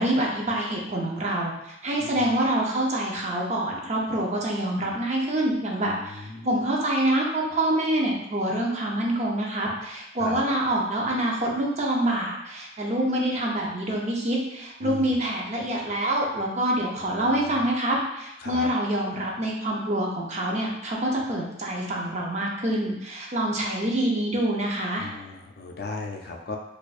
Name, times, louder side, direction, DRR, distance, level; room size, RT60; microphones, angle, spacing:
voice 1, 0.0-1.5 1.8-25.1, right 1 dB, 40° right, -1 dB, 0.6 m, -26 dB
voice 2, 5.9-6.6 10.2-10.4 14.8-15.2 17.0-17.6 18.4-18.7 25.0-26.6, left 3 dB, 55° left, 2 dB, 0.5 m, -37 dB
4.3 x 2.5 x 2.4 m, 0.88 s
head